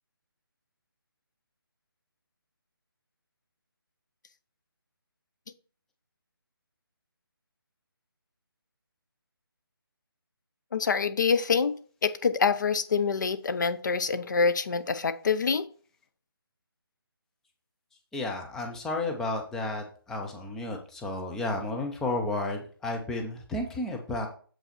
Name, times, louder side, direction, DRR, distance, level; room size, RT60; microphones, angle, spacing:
voice 1, 10.7-15.7, left 5 dB, 50° left, 12 dB, 0.8 m, -26 dB
voice 2, 18.1-24.3, left 2 dB, 5° left, 2 dB, 0.5 m, -32 dB
7.4 x 5.5 x 4.3 m, 0.43 s
figure-of-eight pair, 155°, 13 cm